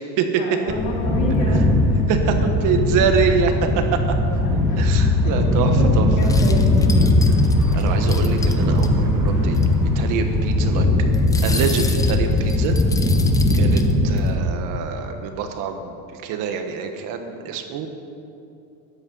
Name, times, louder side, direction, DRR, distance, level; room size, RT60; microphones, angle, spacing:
voice 1, 0.4-1.7 4.5-6.8 13.5-13.9, left 2 dB, 50° left, -2 dB, 3.3 m, -29 dB
sound 1, 0.7-14.3, left 1 dB, 5° right, 3.6 m, -19 dB
voice 2, 2.1-4.0 4.8-6.1 7.8-9.6 9.9-10.9 11.4-12.8 13.5-17.9, right 6 dB, 50° right, 6 dB, 1.3 m, -25 dB
sound 2, 6.2-8.9 9.3-9.4 9.5-9.7 11.1-14.3, left 4 dB, 10° left, 0.5 m, -33 dB
13.0 x 11.0 x 5.4 m, 2.7 s
supercardioid pair, 145°, 41 cm